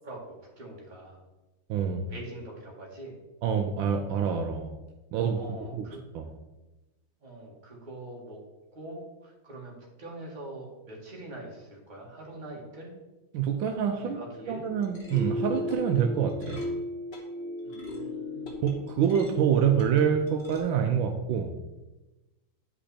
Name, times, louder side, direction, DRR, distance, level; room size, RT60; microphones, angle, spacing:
voice 1, 0.0-1.2 2.1-3.2 5.4-6.0 7.2-8.4 8.7-12.9 14.0-14.6 17.6-18.5, right 1 dB, 25° right, -3 dB, 1.9 m, -43 dB
voice 2, 1.7-2.0 3.4-4.7 5.1-5.4 5.8-5.9 6.1-6.3 13.3-14.2 14.5-16.6 18.6-21.5, right 7 dB, 80° right, 5 dB, 1.4 m, -26 dB
sound 1, 14.7-20.6, left 1 dB, 35° left, 1.2 m, -36 dB
8.8 x 5.3 x 4.3 m, 1.1 s
omnidirectional pair, 2.2 m